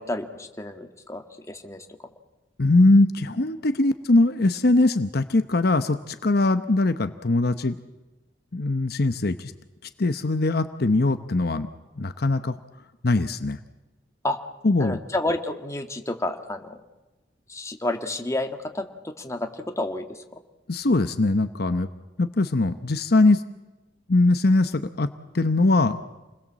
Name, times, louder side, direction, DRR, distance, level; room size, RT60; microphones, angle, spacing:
voice 1, 0.0-1.9 14.2-14.4 14.8-16.8 17.5-19.5 19.8-20.4, left 1 dB, 15° left, 5 dB, 1.8 m, -30 dB
voice 2, 2.6-7.8 8.5-9.5 9.8-11.7 12.0-12.6 13.0-13.6 14.6-15.0 20.7-21.9 22.2-23.4 24.1-26.0, left 2 dB, 60° left, 10 dB, 0.9 m, -21 dB
29.0 x 21.0 x 7.5 m, 1.1 s
head